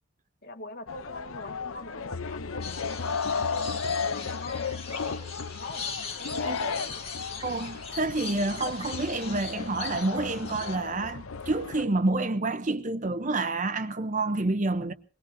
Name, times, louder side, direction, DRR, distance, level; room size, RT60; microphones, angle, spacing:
voice 1, 0.4-5.2 5.6-5.9 6.2-7.0 8.3-8.7, left 2 dB, 45° left, 2.0 m, -43 dB
sound 1, 0.9-11.9, left 5 dB, 75° left, 0.7 m, -34 dB
sound 2, 2.6-10.8, left 5 dB, 25° left, 2.1 m, -40 dB
voice 2, 7.4-14.9, right 2 dB, 35° right, 0.7 m, -28 dB
23.0 x 20.5 x 2.7 m
head